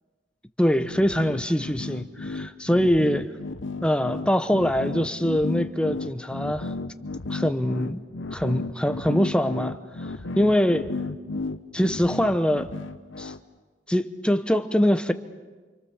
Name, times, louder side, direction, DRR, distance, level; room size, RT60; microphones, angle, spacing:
voice 1, 0.6-3.3 3.8-6.7 7.3-8.0 8.3-9.8 10.3-10.9 11.7-12.7 13.2-13.3 13.9-15.1, equal, 5° left, 0.9 m, -23 dB
sound 1, 0.8-13.4, left 3 dB, 85° left, 1.0 m, -33 dB
28.5 x 26.5 x 7.2 m
head